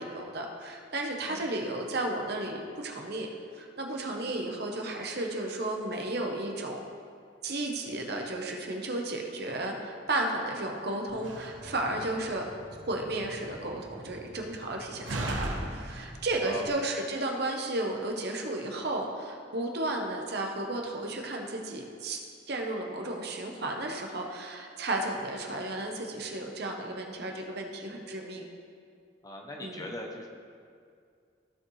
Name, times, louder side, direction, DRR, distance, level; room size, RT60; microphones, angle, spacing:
voice 1, 0.0-3.3 3.5-6.8 7.4-12.6 12.9-28.4 29.6-29.9, right 2 dB, 55° right, 2 dB, 1.0 m, -33 dB
Slam, 11.1-16.7, right 1 dB, 85° right, 1.2 m, -39 dB
voice 2, 16.4-16.9 29.2-30.3, left 1 dB, 20° left, 1 dB, 0.7 m, -40 dB
15.0 x 5.0 x 3.2 m, 2.2 s
head